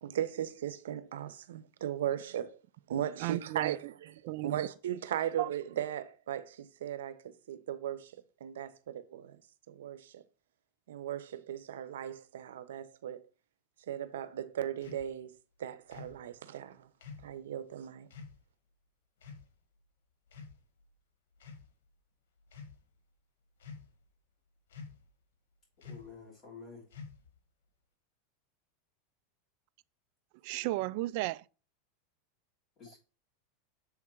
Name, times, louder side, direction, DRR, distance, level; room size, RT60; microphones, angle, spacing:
voice 1, 0.0-2.6 2.9-4.1 4.4-8.1 8.4-9.4 9.7-10.2 10.9-13.2 13.9-16.9 17.2-18.1, right 10 dB, 90° right, 0.8 m, -37 dB
voice 2, 3.2-3.8 4.2-4.7 5.4-5.5 30.4-31.4, right 19 dB, 60° right, 0.3 m, -34 dB
sound 1, 14.8-15.1 15.9-16.2 17.0-17.3 18.1-18.4 19.2-19.5 20.3-20.8 21.4-21.7 22.4-22.8 23.6-24.0 24.7-25.1 25.8-26.2 26.9-27.4, left 5 dB, 85° left, 1.3 m, -48 dB
voice 3, 25.8-26.8 32.8-33.0, left 5 dB, 30° left, 3.2 m, -49 dB
7.2 x 3.6 x 4.5 m
supercardioid pair, 135°, 0 cm